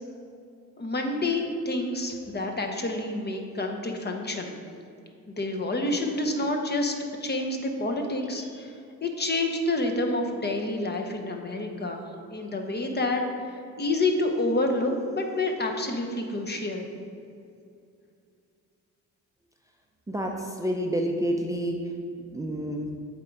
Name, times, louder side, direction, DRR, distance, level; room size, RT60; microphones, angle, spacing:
voice 1, 0.8-4.5 5.4-6.9 7.2-8.7 9.0-12.0 12.3-13.2 13.8-16.9, left 2 dB, 30° left, 3 dB, 0.9 m, -28 dB
voice 2, 20.1-21.9 22.3-22.9, equal, 10° right, 1 dB, 0.5 m, -29 dB
7.5 x 3.8 x 4.6 m, 2.5 s
cardioid pair, 70°, 33 cm